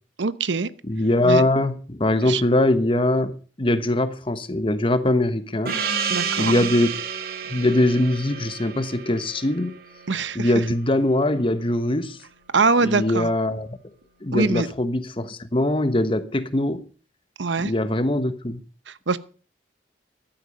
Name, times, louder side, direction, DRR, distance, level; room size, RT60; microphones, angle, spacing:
voice 1, 0.2-0.7 1.2-1.4 2.3-2.4 6.1-6.5 10.1-10.5 12.5-13.3 14.3-14.7 17.4-17.7 18.9-19.2, right 4 dB, 80° right, 0.9 m, -23 dB
voice 2, 0.9-5.8 6.4-6.9 7.5-9.7 10.3-12.2 12.8-13.8 14.2-16.8 17.6-18.6, left 1 dB, 30° left, 1.1 m, -22 dB
Gong, 5.7-10.7, right 6 dB, 55° right, 2.1 m, -30 dB
14.5 x 12.0 x 5.3 m
head